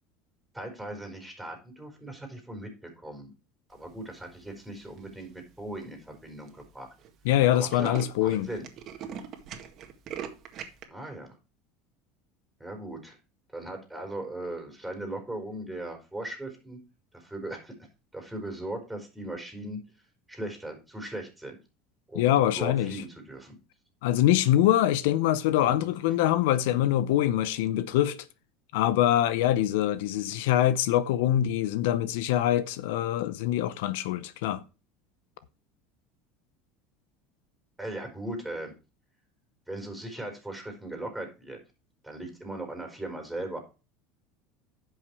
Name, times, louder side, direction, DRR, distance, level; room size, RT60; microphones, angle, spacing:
voice 1, 0.5-3.3 3.7-6.9 7.5-8.6 10.9-11.3 12.6-13.2 13.5-16.8 17.1-17.7 18.1-19.8 20.3-21.6 22.1-23.6 25.6-25.9 37.8-38.7 39.7-41.6 42.0-43.6, right 1 dB, 5° right, 4.4 m, -38 dB
Tools, 4.8-5.2 5.8-5.9 6.1-6.2 6.5-6.7 7.0-7.1 7.4-10.8, right 8 dB, 50° right, 1.8 m, -41 dB
voice 2, 7.2-8.5 22.1-23.0 24.0-28.3 28.7-34.6, left 12 dB, 80° left, 0.7 m, -24 dB
10.5 x 5.8 x 4.7 m
supercardioid pair, 105°, 0 cm